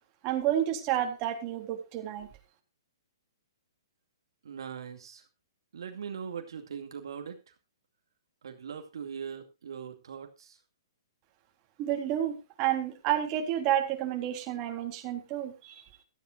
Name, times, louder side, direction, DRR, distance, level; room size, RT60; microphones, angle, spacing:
voice 1, 0.2-2.3 11.8-15.8, right 11 dB, 30° right, 2 dB, 3.6 m, -30 dB
voice 2, 4.4-5.3 5.7-7.6 8.4-10.6, right 7 dB, 75° right, 5 dB, 2.4 m, -41 dB
17.0 x 14.0 x 2.5 m, 0.26 s
hypercardioid pair, 145°, 2 cm